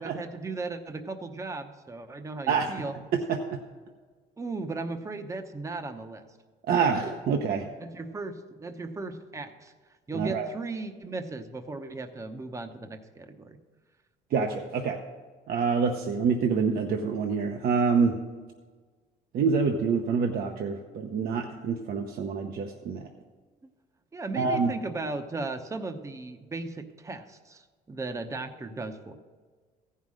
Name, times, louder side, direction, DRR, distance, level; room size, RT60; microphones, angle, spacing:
voice 1, 0.0-2.9 4.4-6.2 7.8-9.7 10.1-13.6 24.1-27.6 27.9-29.2, right 3 dB, 20° right, 8 dB, 0.8 m, -36 dB
voice 2, 3.1-3.6 6.7-7.7 10.1-10.5 14.3-15.0 15.5-18.2 19.3-23.0 24.4-24.7, right 5 dB, 60° right, 3 dB, 0.8 m, -26 dB
14.5 x 5.7 x 6.3 m, 1.4 s
cardioid pair, 110°, 17 cm